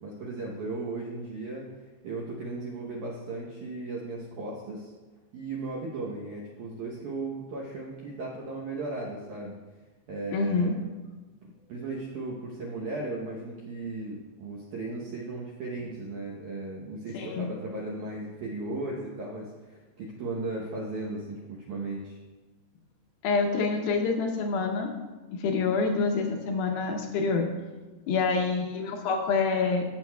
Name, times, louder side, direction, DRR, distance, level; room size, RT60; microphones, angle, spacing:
voice 1, 0.0-1.7 2.0-4.9 5.3-9.6 10.1-10.8 11.7-22.2, right 2 dB, 75° right, -3 dB, 1.8 m, -36 dB
voice 2, 10.3-10.8 17.1-17.5 23.2-24.9 25.3-27.5 28.1-29.8, left 4 dB, 75° left, 2 dB, 2.4 m, -27 dB
14.5 x 7.7 x 2.2 m, 1.2 s
omnidirectional pair, 4.7 m